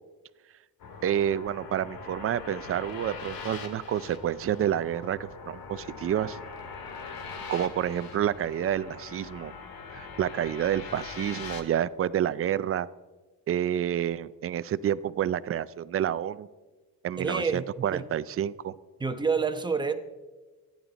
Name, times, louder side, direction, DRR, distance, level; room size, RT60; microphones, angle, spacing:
sound 1, 0.8-11.6, left 5 dB, 70° left, 2.2 m, -42 dB
voice 1, 1.0-6.4 7.5-9.5 9.9-12.9 13.5-16.5 17.0-18.7, right 10 dB, 40° right, 16 dB, 0.4 m, -29 dB
voice 2, 17.2-18.0 19.0-19.9, right 5 dB, 10° right, 7 dB, 0.9 m, -28 dB
27.0 x 10.5 x 4.0 m, 1.3 s
cardioid pair, 175°, 36 cm